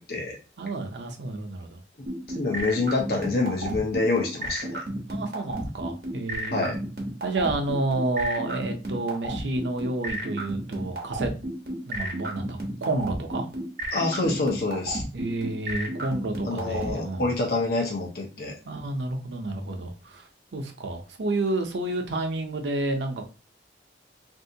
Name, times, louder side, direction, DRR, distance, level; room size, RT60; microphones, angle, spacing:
voice 1, 0.6-1.8 5.1-6.7 7.2-11.3 11.8-13.5 15.1-17.3 18.6-23.3, right 2 dB, 85° right, 4 dB, 0.7 m, -30 dB
sound 1, 2.1-16.9, right 1 dB, 55° right, 1.0 m, -31 dB
voice 2, 2.3-4.9 6.5-6.8 13.9-15.0 16.5-18.5, left 3 dB, 60° left, 0 dB, 0.8 m, -26 dB
3.4 x 2.7 x 2.7 m, 0.32 s
head